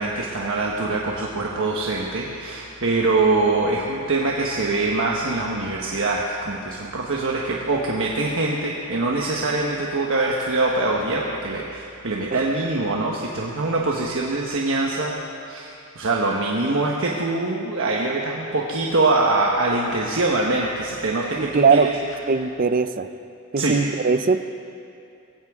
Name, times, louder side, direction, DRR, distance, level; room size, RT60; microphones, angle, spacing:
voice 1, 0.0-15.1 15.5-21.9 23.6-23.8, right 2 dB, 60° right, -2 dB, 1.2 m, -23 dB
voice 2, 21.3-21.9 22.3-23.1 23.5-24.4, right 5 dB, 40° right, 11 dB, 0.5 m, -20 dB
21.5 x 16.0 x 3.7 m, 2.5 s
head